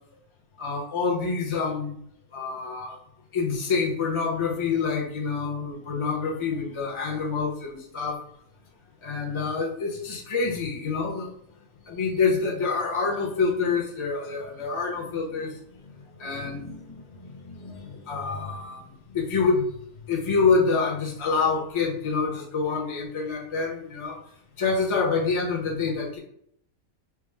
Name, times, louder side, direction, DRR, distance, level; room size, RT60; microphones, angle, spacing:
voice 1, 0.6-2.0 2.3-3.0 3.3-8.2 9.0-11.3 11.9-15.5 15.8-15.9 16.2-17.0 17.2-18.8 19.1-19.6 20.1-24.2 24.6-26.2, left 4 dB, 30° left, -1 dB, 0.7 m, -27 dB
4.6 x 2.0 x 3.4 m, 0.69 s
omnidirectional pair, 1.5 m